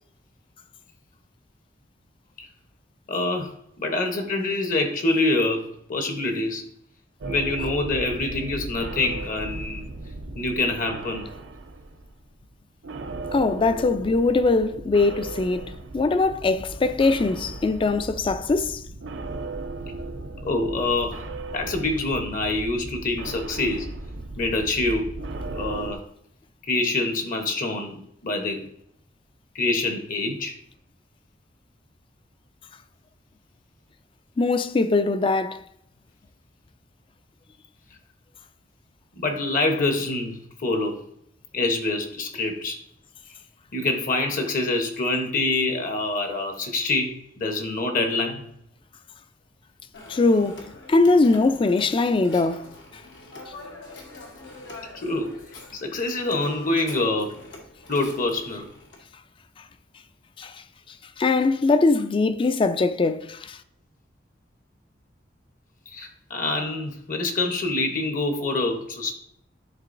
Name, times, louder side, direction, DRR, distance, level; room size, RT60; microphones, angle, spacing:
voice 1, 3.1-6.6 7.3-9.8 10.4-11.3 20.4-21.2 21.5-23.9 24.4-25.1 25.5-26.0 26.7-28.7 29.5-30.5 39.2-41.0 41.5-42.8 43.7-48.4 54.9-55.4 55.7-57.4 57.9-58.7 65.9-69.1, left 2 dB, 50° left, 0.9 m, -26 dB
sound 1, 7.2-12.5 12.8-26.0, right 2 dB, 85° right, 0.6 m, -36 dB
voice 2, 13.3-18.8 34.4-35.6 50.1-52.7 60.4-60.5 61.2-63.6, left 3 dB, 30° left, 0.4 m, -21 dB
Telephone, 49.9-59.0, left 2 dB, 80° left, 1.3 m, -44 dB
10.5 x 3.8 x 2.6 m
head